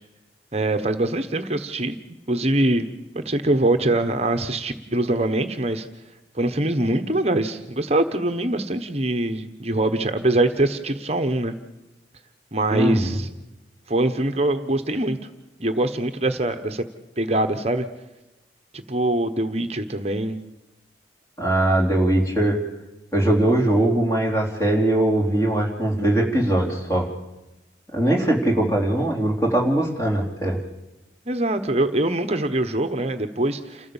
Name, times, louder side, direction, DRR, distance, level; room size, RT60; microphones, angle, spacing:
voice 1, 0.5-2.0 2.3-2.9 3.1-5.9 6.3-11.5 12.5-13.3 13.9-15.2 15.6-16.8 17.2-17.9 18.7-20.4 31.3-33.9, right 1 dB, 35° right, 8 dB, 1.1 m, -23 dB
voice 2, 12.7-13.2 21.4-22.6 23.1-27.1 27.9-30.6, right 1 dB, 15° left, -1 dB, 3.7 m, -21 dB
29.0 x 14.5 x 7.2 m, 1.0 s
head